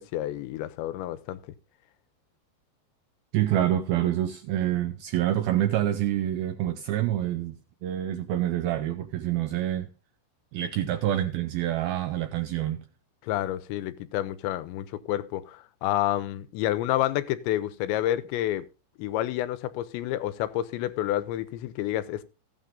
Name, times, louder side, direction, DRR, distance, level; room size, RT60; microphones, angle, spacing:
voice 1, 0.0-1.4 13.2-18.7 19.0-22.2, left 13 dB, 85° left, 3.0 m, -29 dB
voice 2, 3.3-9.9 10.5-12.8, right 12 dB, 80° right, 2.2 m, -27 dB
14.5 x 9.1 x 3.8 m
omnidirectional pair, 5.1 m